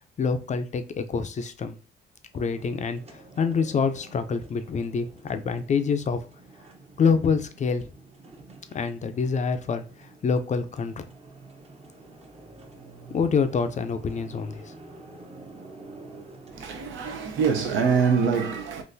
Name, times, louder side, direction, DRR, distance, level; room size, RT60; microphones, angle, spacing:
voice 1, 0.2-1.8 2.3-6.2 7.0-7.8 8.7-11.0 13.1-14.7, left 5 dB, 35° left, 0.4 m, -26 dB
sound 1, 2.3-18.0, right 3 dB, 30° right, 0.7 m, -48 dB
voice 2, 16.5-18.8, right 6 dB, 80° right, 0.7 m, -24 dB
3.7 x 2.5 x 2.6 m
cardioid pair, 90°, 20 cm